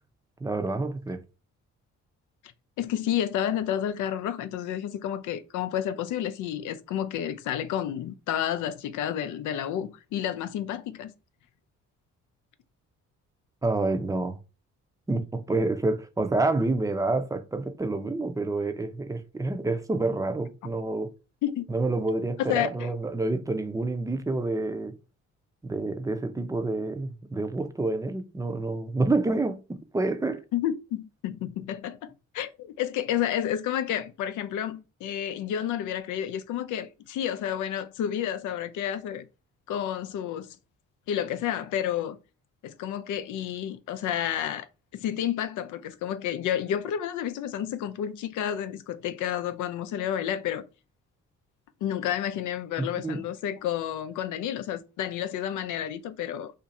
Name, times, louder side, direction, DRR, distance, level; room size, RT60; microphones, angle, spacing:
voice 1, 0.4-1.2 13.6-14.4 15.1-21.1 21.7-24.9 25.6-30.4 52.8-53.2, right 2 dB, 10° right, 0.5 m, -28 dB
voice 2, 2.8-11.1 21.4-21.7 22.5-22.9 30.5-39.3 39.7-40.5 41.1-42.2 42.6-44.7 44.9-50.6 51.8-56.5, left 10 dB, 80° left, 0.5 m, -30 dB
2.6 x 2.4 x 4.0 m
cardioid pair, 90°, 30 cm